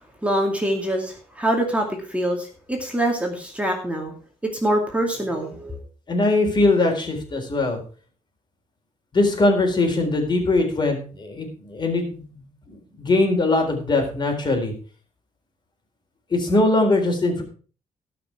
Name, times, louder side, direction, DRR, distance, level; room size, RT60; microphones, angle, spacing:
voice 1, 0.2-4.1 4.6-5.8, right 1 dB, 10° right, 1 dB, 2.4 m, -24 dB
voice 2, 6.1-7.8 9.1-14.7 16.3-17.4, left 2 dB, 40° left, 3 dB, 4.0 m, -21 dB
18.0 x 6.0 x 4.9 m, 0.40 s
cardioid pair, 115°, 12 cm